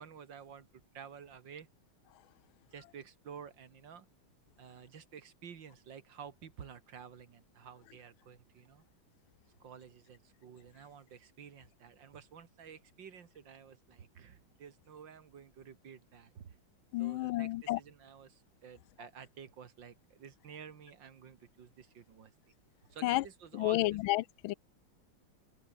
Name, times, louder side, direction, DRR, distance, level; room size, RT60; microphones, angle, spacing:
voice 1, 0.0-1.7 2.7-4.1 4.6-8.9 9.6-16.6 17.0-22.3 22.9-24.0, right 7 dB, 65° right, 2.4 m, -51 dB
voice 2, 16.9-17.8 23.0-23.2 23.6-24.5, left 18 dB, 90° left, 1.4 m, -31 dB
omnidirectional pair, 2.2 m